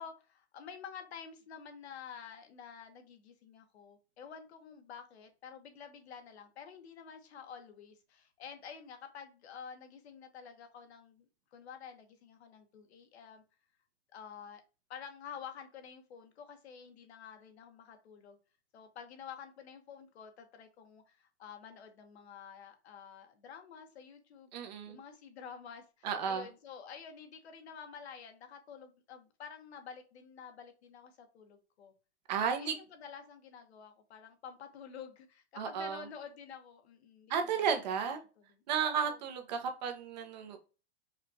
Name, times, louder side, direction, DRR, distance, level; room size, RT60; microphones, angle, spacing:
voice 1, 0.0-13.4 14.1-14.6 14.9-18.4 18.7-24.5 24.9-31.9 32.5-37.9 38.8-39.2, left 7 dB, 75° left, 1.1 m, -50 dB
voice 2, 24.5-25.0 26.0-26.5 32.3-32.8 35.6-36.0 37.3-38.2 38.7-40.6, right 7 dB, 40° right, 0.7 m, -33 dB
4.9 x 2.3 x 2.7 m
supercardioid pair, 170°, 33 cm